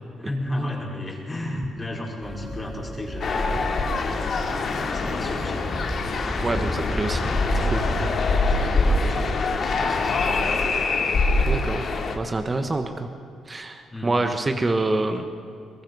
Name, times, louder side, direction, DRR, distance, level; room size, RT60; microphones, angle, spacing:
voice 1, 0.2-5.7 8.5-10.8 13.9-14.2, left 1 dB, 20° left, -2 dB, 5.2 m, -35 dB
sound 1, 2.2-9.4, equal, ahead, 5.3 m, -34 dB
sound 2, 3.2-12.2, left 3 dB, 55° left, 2.5 m, -24 dB
voice 2, 6.4-7.3 7.5-7.8 11.5-11.9 12.1-13.1 13.5-15.3, right 2 dB, 25° right, 6 dB, 1.4 m, -26 dB
23.5 x 21.5 x 5.6 m, 2.5 s
cardioid pair, 90°, 0 cm